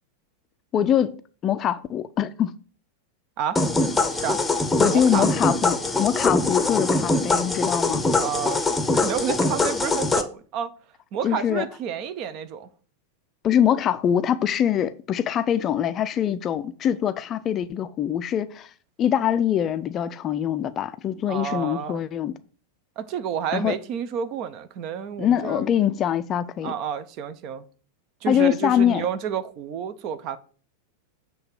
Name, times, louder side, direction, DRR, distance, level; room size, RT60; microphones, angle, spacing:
voice 1, 0.7-1.2 1.4-2.5 4.8-8.0 11.2-11.6 13.4-18.7 19.0-22.3 23.5-23.7 25.2-26.8 28.3-29.0, left 9 dB, 30° left, 0.5 m, -23 dB
sound 1, 3.6-10.2, left 3 dB, 10° left, 0.9 m, -23 dB
voice 2, 4.1-4.4 4.8-5.3 8.2-8.6 8.9-10.7 11.1-12.7 21.3-22.0 23.0-25.7 26.6-27.6 28.2-30.4, right 8 dB, 40° right, 0.7 m, -30 dB
7.9 x 3.4 x 6.5 m
figure-of-eight pair, 90°, 0 cm